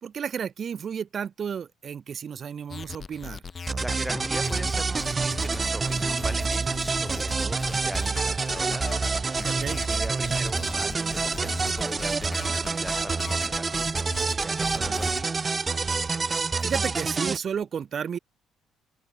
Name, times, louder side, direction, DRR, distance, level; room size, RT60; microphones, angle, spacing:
voice 1, 0.0-3.4 9.5-9.8 14.7-15.0 16.6-18.2, right 7 dB, 40° right, 3.5 m, -32 dB
sound 1, 2.7-15.2, left 5 dB, 30° left, 1.6 m, -39 dB
voice 2, 3.5-9.6 9.9-15.3, equal, ahead, 3.0 m, -40 dB
sound 2, 3.7-17.4, right 4 dB, 20° right, 1.1 m, -27 dB
open air
cardioid pair, 140°, 0 cm